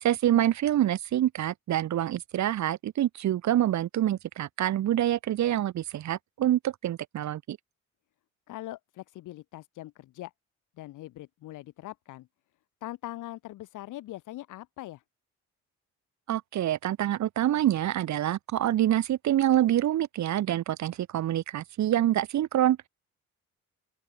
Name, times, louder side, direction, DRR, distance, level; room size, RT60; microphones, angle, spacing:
voice 1, 0.0-7.6 16.3-22.9, right 12 dB, 70° right, 1.5 m, -26 dB
voice 2, 8.5-10.3 10.8-12.3 12.8-15.0, left 16 dB, 90° left, 2.7 m, -41 dB
open air
cardioid pair, 90°, 30 cm